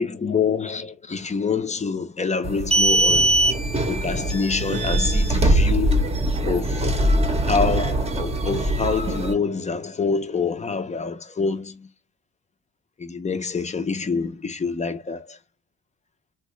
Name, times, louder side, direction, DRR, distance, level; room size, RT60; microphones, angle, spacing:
voice 1, 0.0-3.3 3.9-6.1 6.5-6.9 7.5-11.9 13.0-15.4, left 5 dB, 25° left, 0.6 m, -26 dB
sound 1, 2.4-9.3, right 1 dB, 20° right, 0.8 m, -21 dB
3.3 x 2.3 x 3.0 m
cardioid pair, 90°, 30 cm